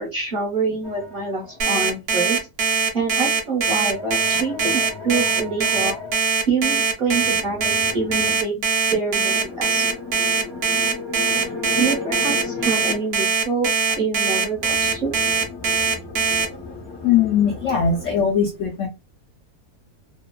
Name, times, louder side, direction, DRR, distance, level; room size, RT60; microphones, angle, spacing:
voice 1, 0.0-2.4 2.9-6.0 6.5-9.8 11.4-11.5 11.8-15.1, right 4 dB, 45° right, -2 dB, 0.8 m, -26 dB
sound 1, 0.8-1.7 3.5-6.2 7.0-8.4 9.0-13.1 14.5-18.1, left 3 dB, 40° left, 0.4 m, -35 dB
Alarm, 1.6-16.4, right 5 dB, 70° right, 0.6 m, -21 dB
voice 2, 17.0-18.9, left 7 dB, 70° left, 0 dB, 0.7 m, -20 dB
2.8 x 2.2 x 2.2 m, 0.27 s
omnidirectional pair, 1.7 m